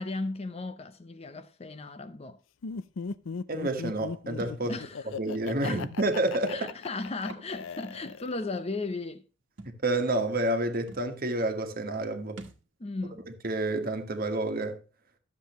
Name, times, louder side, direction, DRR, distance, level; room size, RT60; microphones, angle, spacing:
voice 1, 0.0-2.4 4.7-5.1 5.6-5.8 6.5-9.2 12.8-13.3, left 3 dB, 30° left, 0.6 m, -36 dB
Laughter, 2.6-8.6, left 5 dB, 80° left, 0.5 m, -37 dB
voice 2, 3.5-4.8 5.2-6.7 9.8-12.4 13.4-14.8, right 2 dB, 45° right, 1.4 m, -29 dB
Thump thud, 4.4-4.6 5.7-5.8 7.2-7.5 7.9-8.0 9.6-9.8 10.6-10.7 10.9-11.1 12.4-12.7, right 2 dB, 65° right, 1.4 m, -44 dB
12.0 x 7.4 x 3.0 m
head